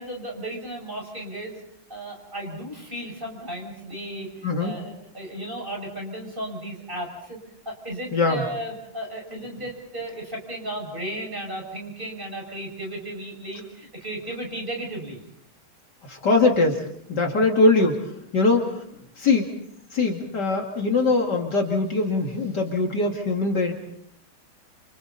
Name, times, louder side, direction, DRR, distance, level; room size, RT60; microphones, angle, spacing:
voice 1, 0.0-1.6 1.9-7.4 7.6-15.2, right 1 dB, 25° right, 0 dB, 6.4 m, -35 dB
voice 2, 4.4-4.8 8.1-8.4 16.0-18.1 18.3-18.7 19.2-19.5 19.9-23.7, left 3 dB, 55° left, 2 dB, 2.8 m, -22 dB
29.5 x 28.0 x 4.1 m, 0.70 s
omnidirectional pair, 2.3 m